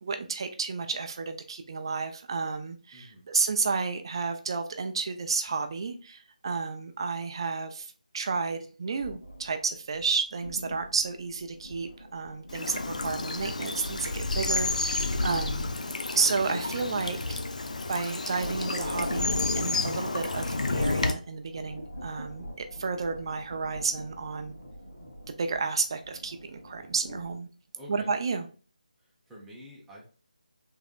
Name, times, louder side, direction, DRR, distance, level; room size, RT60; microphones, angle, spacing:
voice 1, 0.0-15.7 16.1-17.4 17.9-24.6 25.4-27.5 27.9-28.5, right 4 dB, 35° right, 8 dB, 0.5 m, -31 dB
voice 2, 2.9-3.2 27.7-28.1 29.0-30.1, equal, 5° right, -6 dB, 1.0 m, -48 dB
sound 1, 9.0-15.8 16.2-27.3, equal, 75° left, 1.9 m, -46 dB
Bird vocalization bird call bird song / Stream, 12.5-21.1, left 3 dB, 55° left, 0.6 m, -30 dB
4.9 x 3.6 x 2.4 m, 0.38 s
figure-of-eight pair, 155°, 5 cm